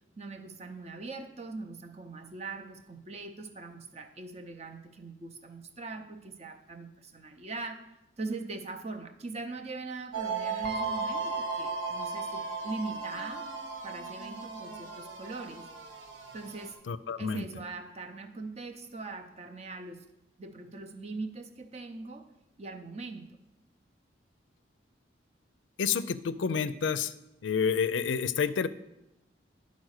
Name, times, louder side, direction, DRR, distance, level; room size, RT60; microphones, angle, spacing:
voice 1, 0.2-7.8 8.2-13.5 13.8-15.7 16.3-16.8 17.2-20.1 20.4-22.3 22.6-23.3, right 3 dB, 35° right, 6 dB, 0.6 m, -41 dB
sound 1, 10.1-16.7, right 4 dB, 85° right, 1.0 m, -36 dB
voice 2, 16.9-17.4 25.8-27.1 27.4-28.7, left 6 dB, 80° left, 14 dB, 0.4 m, -29 dB
10.5 x 4.1 x 6.4 m, 0.91 s
head